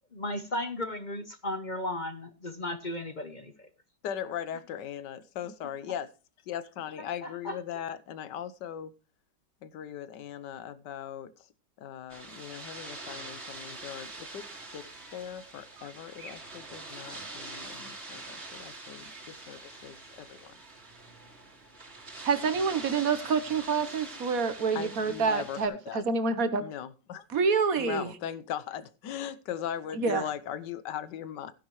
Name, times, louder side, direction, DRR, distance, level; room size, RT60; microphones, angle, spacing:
voice 1, 0.1-3.7 7.2-7.6, left 1 dB, 40° left, 0.7 m, -35 dB
voice 2, 4.0-6.1 6.5-8.9 9.6-11.4 11.8-14.4 14.7-14.8 15.1-20.6 24.7-26.0 26.6-27.2 27.8-31.5, left 9 dB, 75° left, 1.5 m, -39 dB
sound 1, 12.1-25.7, right 2 dB, 35° right, 2.7 m, -44 dB
voice 3, 22.2-26.6 27.3-28.1 29.9-30.2, right 5 dB, 55° right, 1.5 m, -27 dB
15.5 x 10.0 x 3.1 m
omnidirectional pair, 1.9 m